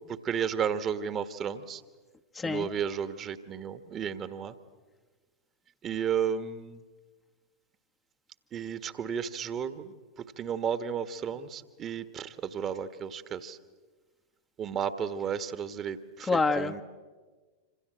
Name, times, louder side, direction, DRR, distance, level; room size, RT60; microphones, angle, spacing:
voice 1, 0.1-1.8 2.4-4.5 5.8-6.8 8.5-13.6 14.6-16.8, right 7 dB, 30° right, 11 dB, 1.4 m, -33 dB
voice 2, 2.4-2.7 16.3-16.8, left 3 dB, 15° left, 6 dB, 1.1 m, -27 dB
27.0 x 26.5 x 7.8 m, 1.4 s
figure-of-eight pair, 90°, 0 cm